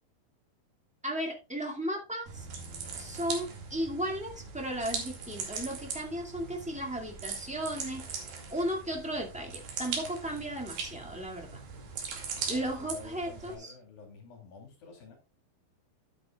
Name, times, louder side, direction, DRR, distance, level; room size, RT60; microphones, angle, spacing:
voice 1, 1.0-2.5 2.9-8.0 8.5-11.6 12.5-13.7, equal, 5° right, 0 dB, 0.9 m, -35 dB
sound 1, 2.3-13.5, right 5 dB, 70° right, 4.1 m, -40 dB
voice 2, 12.9-15.2, left 4 dB, 65° left, 3 dB, 4.3 m, -50 dB
12.5 x 9.7 x 2.3 m, 0.27 s
omnidirectional pair, 4.4 m